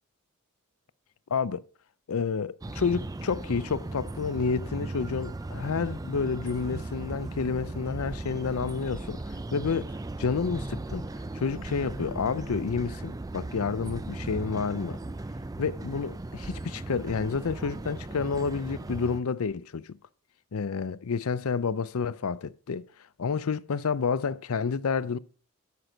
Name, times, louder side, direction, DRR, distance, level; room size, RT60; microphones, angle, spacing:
voice 1, 1.3-1.6 2.1-9.2 9.5-9.9 10.2-11.1 11.3-15.0 15.6-20.0 20.5-22.9 23.2-25.2, left 5 dB, 70° left, 0.5 m, -29 dB
sound 1, 2.6-19.2, right 2 dB, 15° right, 0.4 m, -37 dB
13.0 x 6.0 x 5.1 m
head